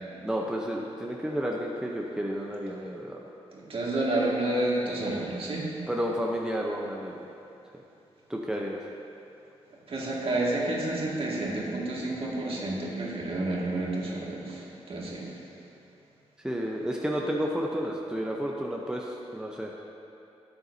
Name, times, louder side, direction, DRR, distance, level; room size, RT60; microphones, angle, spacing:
voice 1, 0.2-3.3 5.9-7.2 8.3-8.8 16.4-19.8, equal, 5° right, -1 dB, 0.8 m, -31 dB
voice 2, 3.5-5.7 9.9-15.3, right 2 dB, 55° right, -5 dB, 2.0 m, -30 dB
12.0 x 7.9 x 2.7 m, 2.7 s
cardioid pair, 70°, 12 cm